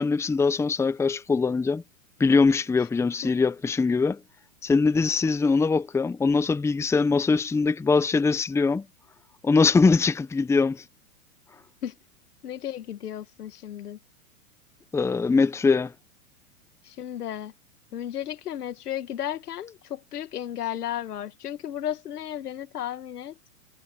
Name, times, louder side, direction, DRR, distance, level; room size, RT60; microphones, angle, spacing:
voice 1, 0.0-1.8 2.2-4.2 4.6-8.8 9.4-10.8 14.9-15.9, left 4 dB, 5° left, 0.8 m, -22 dB
voice 2, 12.4-14.0 16.8-17.5 17.9-23.3, left 11 dB, 85° left, 1.7 m, -34 dB
hypercardioid pair, 125°, 45 cm